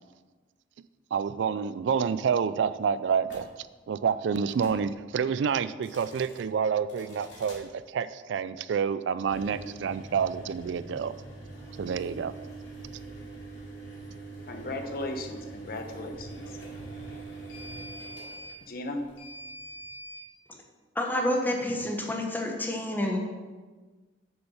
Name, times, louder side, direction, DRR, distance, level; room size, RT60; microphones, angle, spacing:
voice 1, 1.1-11.1 11.8-12.3, right 6 dB, 70° right, 15 dB, 0.3 m, -28 dB
sound 1, 3.2-3.5 4.4-4.8 5.7-6.4 6.9-7.6 9.2-20.2, right 2 dB, 70° left, 2.5 m, -43 dB
voice 2, 14.5-16.4 18.7-19.0, left 1 dB, 50° left, 5 dB, 0.9 m, -36 dB
voice 3, 20.9-23.2, left 1 dB, 10° left, 1 dB, 1.2 m, -28 dB
7.1 x 6.6 x 5.6 m, 1.3 s
head